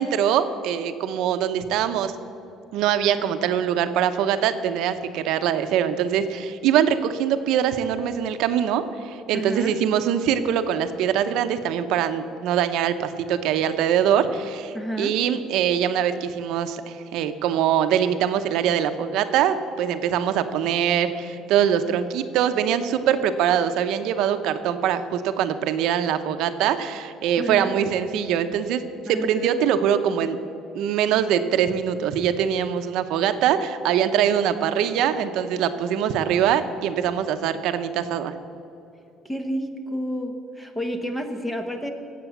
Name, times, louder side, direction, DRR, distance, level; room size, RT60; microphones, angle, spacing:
voice 1, 0.0-2.1 2.7-30.4 30.7-38.3, right 9 dB, 70° right, 9 dB, 0.8 m, -23 dB
voice 2, 9.3-9.7 14.7-15.1 27.4-27.7 29.0-29.6 39.2-41.9, equal, 10° left, 6 dB, 1.1 m, -30 dB
18.0 x 7.7 x 7.1 m, 2.7 s
cardioid pair, 150°, 0 cm